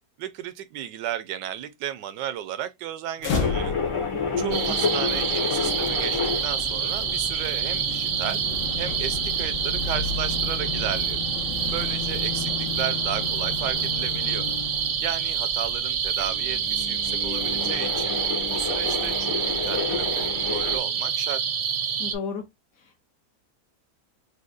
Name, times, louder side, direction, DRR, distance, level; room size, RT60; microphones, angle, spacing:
voice 1, 0.2-3.7 4.4-8.4 8.8-11.2 11.7-14.5 15.0-18.2 18.5-19.3 19.6-21.4, right 11 dB, 85° right, 1.2 m, -34 dB
sound 1, 3.2-15.2, left 5 dB, 90° left, 1.6 m, -33 dB
sound 2, 3.4-20.8, left 4 dB, 40° left, 0.4 m, -32 dB
voice 2, 4.3-4.8 22.0-22.5 22.8-23.0, left 4 dB, 70° left, 0.8 m, -34 dB
sound 3, 4.5-22.1, right 7 dB, 65° right, 0.8 m, -27 dB
5.1 x 2.2 x 2.4 m
omnidirectional pair, 1.8 m